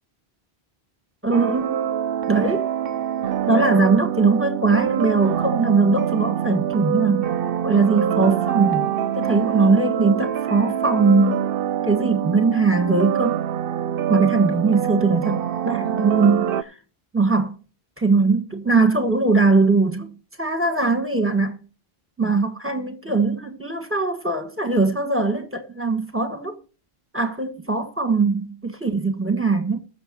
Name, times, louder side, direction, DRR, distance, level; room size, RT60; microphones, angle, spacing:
voice 1, 1.2-1.9 2.3-2.7 3.4-7.3 7.6-8.8 9.1-11.5 11.8-13.4 14.1-16.7 17.1-17.6 18.0-21.6 22.2-26.6 27.1-29.8, right 3 dB, 15° right, 1.4 m, -20 dB
sound 1, 1.3-16.6, right 9 dB, 65° right, 0.8 m, -25 dB
20.5 x 6.9 x 2.9 m
omnidirectional pair, 1.0 m